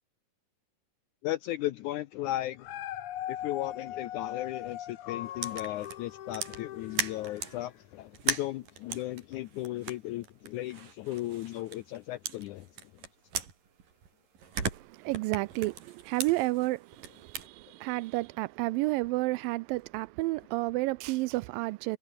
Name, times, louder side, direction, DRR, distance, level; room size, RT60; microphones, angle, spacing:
voice 1, 1.2-2.7 3.3-12.7, left 15 dB, 80° left, 1.8 m, -36 dB
Dog, 2.4-7.8 8.3-8.4, left 12 dB, 60° left, 2.6 m, -40 dB
sound 1, 5.4-7.6 8.1-12.0 12.2-14.1 14.4-17.5, right 7 dB, 65° right, 5.3 m, -38 dB
voice 2, 14.7-22.0, right 21 dB, 80° right, 2.2 m, -31 dB
omnidirectional pair, 4.2 m